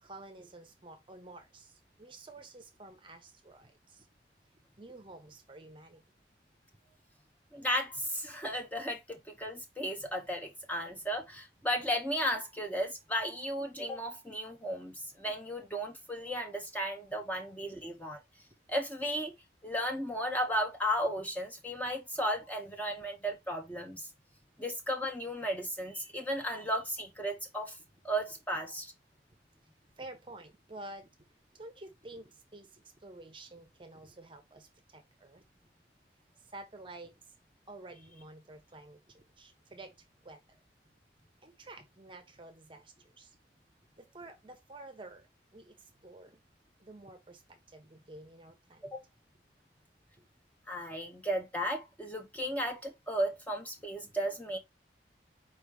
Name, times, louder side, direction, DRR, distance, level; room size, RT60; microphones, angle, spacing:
voice 1, 0.0-4.1 4.8-6.0 17.6-18.0 29.8-31.1 31.5-35.4 36.4-37.2 37.7-40.0 40.2-40.6 41.4-43.4 44.0-46.4 46.8-48.8 50.2-50.3, right 2 dB, 30° right, 0.7 m, -50 dB
voice 2, 7.5-18.2 18.7-19.3 19.6-24.1 24.6-27.8 28.0-28.9 48.8-49.0 50.7-54.6, equal, 10° left, 0.8 m, -35 dB
4.6 x 2.9 x 3.3 m
head